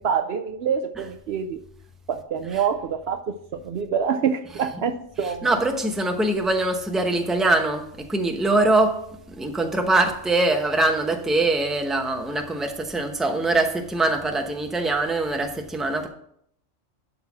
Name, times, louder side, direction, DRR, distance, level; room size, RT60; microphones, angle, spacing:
voice 1, 0.0-1.6 2.1-5.5, right 7 dB, 65° right, 0.8 m, -26 dB
voice 2, 5.2-16.1, right 2 dB, ahead, 0.7 m, -23 dB
11.5 x 4.1 x 5.9 m
omnidirectional pair, 1.3 m